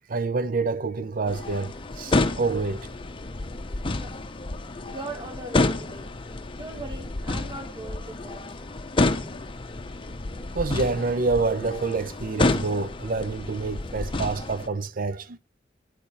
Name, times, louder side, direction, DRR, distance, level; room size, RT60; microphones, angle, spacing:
voice 1, 0.1-2.9 10.5-15.4, right 3 dB, 50° right, 0.6 m, -27 dB
sound 1, 1.3-14.7, left 2 dB, 30° left, 0.7 m, -29 dB
voice 2, 3.9-4.3 4.9-6.1 6.5-8.6, right 2 dB, 25° right, 0.9 m, -39 dB
10.5 x 10.0 x 4.2 m
head